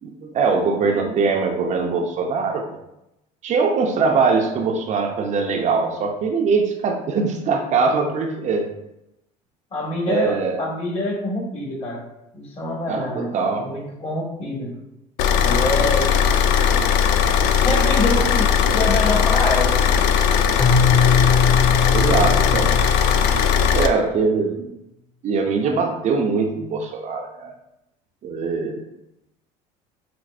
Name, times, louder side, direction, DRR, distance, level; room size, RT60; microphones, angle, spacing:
voice 1, 0.0-2.8 3.4-8.7 10.1-10.6 12.9-13.7 15.8-15.9 16.6-16.7 17.0-17.5 18.7-18.8 20.2-20.3 21.9-22.7 23.7-24.7 25.2-27.5 28.2-28.8, right 4 dB, 45° right, 3 dB, 0.5 m, -22 dB
voice 2, 9.7-12.1 12.3-14.7 15.4-16.1 17.6-19.9, left 2 dB, 40° left, -2 dB, 1.5 m, -26 dB
Car / Idling, 15.2-23.9, left 7 dB, 70° left, 0.4 m, -18 dB
Keyboard (musical), 20.6-23.5, left 6 dB, ahead, 0.4 m, -21 dB
5.8 x 2.0 x 2.5 m, 0.87 s
hypercardioid pair, 75°, 17 cm